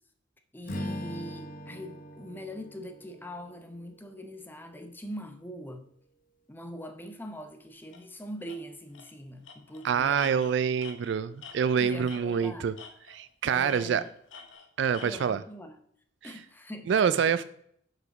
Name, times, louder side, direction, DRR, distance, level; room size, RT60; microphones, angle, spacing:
voice 1, 0.5-5.9 6.5-10.3 11.8-12.7 13.4-14.1 15.0-15.8 16.2-17.4, equal, 10° left, 7 dB, 0.7 m, -42 dB
Strum, 0.6-5.1, equal, 45° left, 0.9 m, -41 dB
Tools, 7.9-8.1 8.5-8.6 8.9-9.1 9.4-12.5 12.8-13.3 13.7-15.3, left 5 dB, 80° left, 1.0 m, -48 dB
voice 2, 9.8-12.7 13.1-14.0 14.8-15.4 16.2-16.3 16.9-17.4, right 7 dB, 65° right, 14 dB, 0.3 m, -26 dB
6.4 x 5.0 x 5.8 m, 0.66 s
head